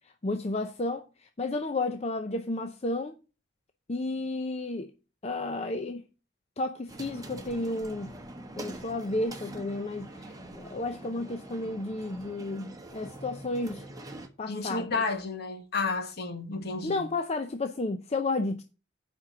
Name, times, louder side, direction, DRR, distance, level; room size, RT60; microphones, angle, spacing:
voice 1, 0.2-1.0 1.4-3.2 3.9-4.9 5.2-6.0 6.6-8.1 8.6-13.8 14.4-15.0 16.8-18.6, left 2 dB, 35° left, 0.6 m, -32 dB
sound 1, 6.9-14.3, right 1 dB, 20° right, 1.3 m, -44 dB
voice 2, 14.5-17.1, left 3 dB, 55° left, 1.5 m, -31 dB
8.3 x 5.3 x 5.9 m
head